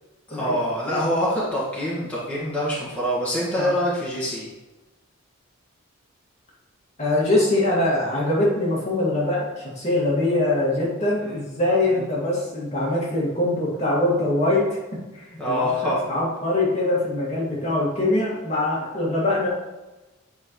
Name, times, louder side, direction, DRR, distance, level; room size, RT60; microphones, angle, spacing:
voice 1, 0.3-4.5 11.2-11.4 11.9-12.0 15.4-16.0, equal, 5° left, -10 dB, 1.7 m, -25 dB
voice 2, 7.0-14.8 15.1-19.5, left 2 dB, 30° left, -5 dB, 2.0 m, -23 dB
9.3 x 5.3 x 3.1 m, 1.1 s
head